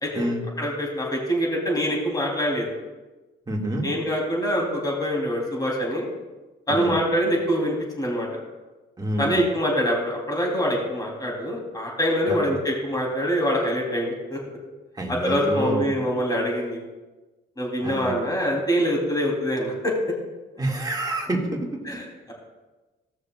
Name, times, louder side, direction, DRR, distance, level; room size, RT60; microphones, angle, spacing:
voice 1, 0.0-0.3 0.6-2.7 3.8-6.1 6.7-8.3 9.2-14.4 15.1-16.8 17.6-19.9 21.9-22.3, equal, 20° left, -2 dB, 3.4 m, -25 dB
voice 2, 3.5-3.9 6.7-6.9 9.0-9.4 12.3-12.5 15.0-16.0 17.8-18.1 20.6-21.8, right 1 dB, 20° right, -1 dB, 2.2 m, -27 dB
17.0 x 6.5 x 2.4 m, 1.2 s
cardioid pair, 90°, 20 cm